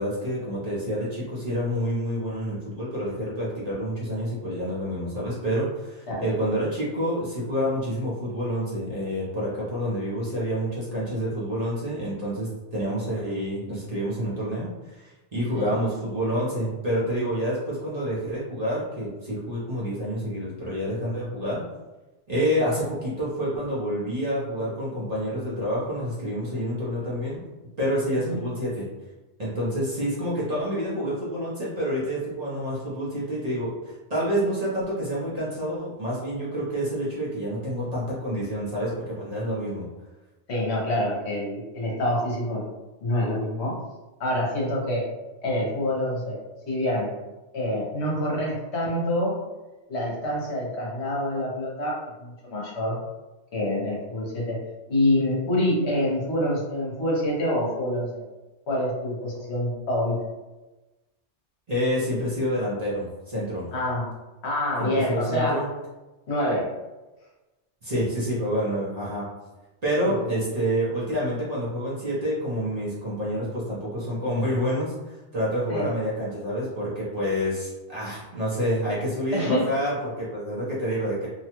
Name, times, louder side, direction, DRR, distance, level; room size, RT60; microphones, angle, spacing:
voice 1, 0.0-21.6 22.3-27.4 27.8-28.9 29.4-39.9 61.7-63.7 64.8-65.7 67.8-69.3 69.8-81.3, equal, 40° right, -8 dB, 0.8 m, -28 dB
voice 2, 40.5-42.6 43.0-43.8 44.2-45.1 45.4-46.4 46.7-47.1 47.5-49.4 49.9-53.0 53.5-54.6 54.9-58.2 58.7-60.2 63.7-64.0 64.4-65.6 66.3-66.7 70.0-70.4 75.7-75.9 79.3-79.7, left 1 dB, 65° left, -4 dB, 1.1 m, -26 dB
2.8 x 2.2 x 2.9 m, 1.1 s
omnidirectional pair, 1.2 m